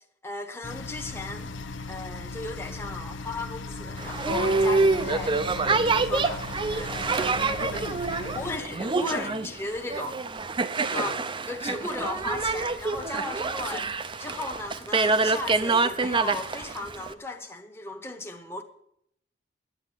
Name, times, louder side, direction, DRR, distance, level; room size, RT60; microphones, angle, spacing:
voice 1, 0.2-1.5 1.9-5.4 5.6-6.5 6.7-7.2 8.3-10.2 10.9-11.1 11.5-13.9 14.2-18.6, left 2 dB, 15° left, 1.0 m, -36 dB
sound 1, 0.6-8.6, left 3 dB, 90° left, 0.8 m, -38 dB
Boat Water vehicle, 4.0-17.1, right 3 dB, 25° right, 0.6 m, -26 dB
sound 2, 4.3-10.5, left 2 dB, 75° right, 1.6 m, -40 dB
voice 2, 7.2-9.6 10.9-11.2, left 2 dB, 55° left, 1.2 m, -39 dB
9.9 x 9.3 x 9.0 m
head